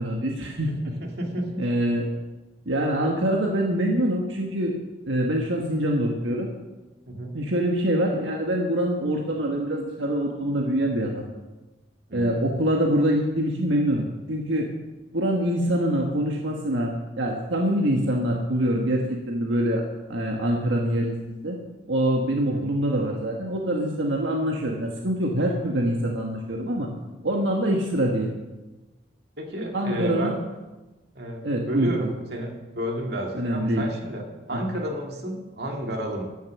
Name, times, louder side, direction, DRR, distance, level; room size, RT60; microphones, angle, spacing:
voice 1, 0.0-0.7 1.6-2.0 2.6-4.7 5.1-6.5 7.3-11.3 12.1-14.7 15.1-19.8 20.1-21.1 21.4-21.6 21.9-26.9 27.2-28.3 29.7-30.3 31.4-31.9 33.3-33.8 34.5-34.6, right 1 dB, 80° right, 0 dB, 1.5 m, -24 dB
voice 2, 0.7-1.7 7.1-7.3 12.1-12.5 22.4-22.7 29.4-30.3 31.1-36.2, right 1 dB, 55° right, 1 dB, 2.3 m, -32 dB
13.0 x 6.7 x 7.5 m, 1.1 s
head